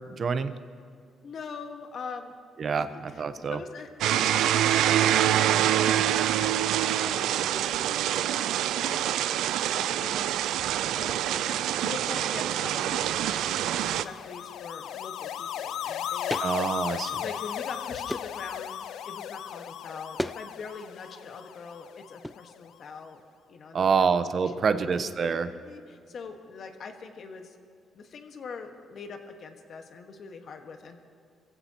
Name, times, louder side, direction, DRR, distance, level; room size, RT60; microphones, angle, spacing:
voice 1, 0.2-0.6 2.6-3.6 16.4-17.2 23.7-25.5, right 5 dB, 50° right, 11 dB, 0.8 m, -26 dB
voice 2, 1.2-2.3 2.8-10.4 10.9-11.4 11.8-16.4 17.2-23.2 23.5-24.0 24.7-24.8 25.2-27.6 27.9-31.0, left 5 dB, 60° left, 5 dB, 1.5 m, -43 dB
sound 1, 4.0-14.0, right 11 dB, 85° right, 0.4 m, -25 dB
sound 2, 13.2-22.5, left 10 dB, 80° left, 0.4 m, -36 dB
sound 3, 16.3-16.5 16.9-17.6 18.1-18.4 20.2-20.4 20.7-21.2 22.2-22.4, equal, 5° left, 0.3 m, -35 dB
25.5 x 15.5 x 3.0 m, 2.3 s
cardioid pair, 90°, 0 cm